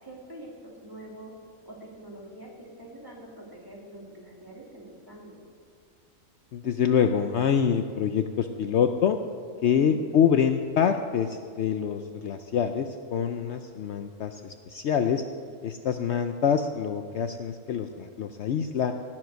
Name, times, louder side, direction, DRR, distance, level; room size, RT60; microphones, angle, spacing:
voice 1, 0.0-1.3 1.6-5.4 9.8-10.2, right 1 dB, 15° right, -3 dB, 2.6 m, -45 dB
voice 2, 6.5-9.2 9.6-15.2 15.6-18.9, left 7 dB, 65° left, 7 dB, 0.8 m, -25 dB
18.0 x 7.7 x 6.3 m, 2.3 s
omnidirectional pair, 1.4 m